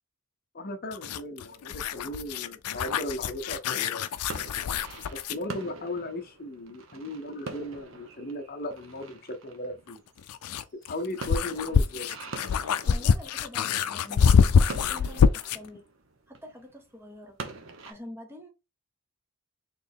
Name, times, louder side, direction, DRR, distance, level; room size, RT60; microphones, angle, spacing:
voice 1, 0.5-4.1 5.1-10.0 10.9-12.1, left 1 dB, 40° left, 0.6 m, -36 dB
sound 1, 0.9-5.4 7.8-7.9 9.9-15.7, left 6 dB, 90° left, 0.4 m, -25 dB
sound 2, 3.1-17.9, right 3 dB, 60° right, 0.8 m, -44 dB
voice 2, 12.9-15.8 16.3-17.4 17.9-18.5, left 1 dB, 10° right, 0.9 m, -45 dB
4.2 x 3.1 x 3.5 m
head